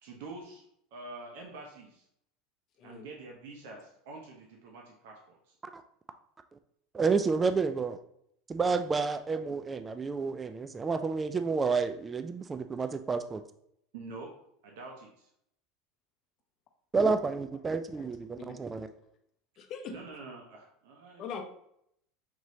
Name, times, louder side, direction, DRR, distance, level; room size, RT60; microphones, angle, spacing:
voice 1, 0.0-0.6 0.9-2.0 2.8-5.4 13.9-14.3 14.6-15.3 19.9-21.3, right 3 dB, 75° right, 0 dB, 0.9 m, -46 dB
voice 2, 6.9-8.0 8.5-13.4 16.9-18.9, right 4 dB, 20° right, 9 dB, 0.3 m, -30 dB
voice 3, 19.6-20.0 21.2-21.4, left 7 dB, 40° left, 4 dB, 0.7 m, -41 dB
6.0 x 3.0 x 2.7 m, 0.73 s
supercardioid pair, 120°, 0 cm